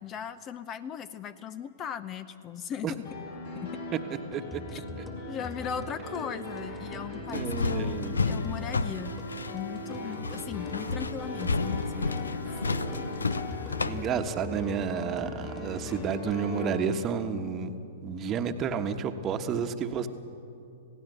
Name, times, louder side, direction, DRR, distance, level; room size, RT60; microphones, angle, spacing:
voice 1, 0.0-3.1 3.6-3.8 4.7-4.8 5.3-9.1 9.5-12.5, left 8 dB, 30° left, 14 dB, 0.8 m, -38 dB
sound 1, 3.0-16.8, left 1 dB, 60° left, 6.7 m, -39 dB
sound 2, 4.3-16.3, left 2 dB, 10° left, 2.4 m, -44 dB
voice 2, 4.3-4.6 7.3-8.4 13.8-20.1, right 6 dB, 30° right, 7 dB, 1.3 m, -31 dB
sound 3, 7.3-14.0, left 4 dB, 80° left, 0.6 m, -32 dB
27.0 x 17.5 x 6.8 m, 2.6 s
figure-of-eight pair, 105°, 0 cm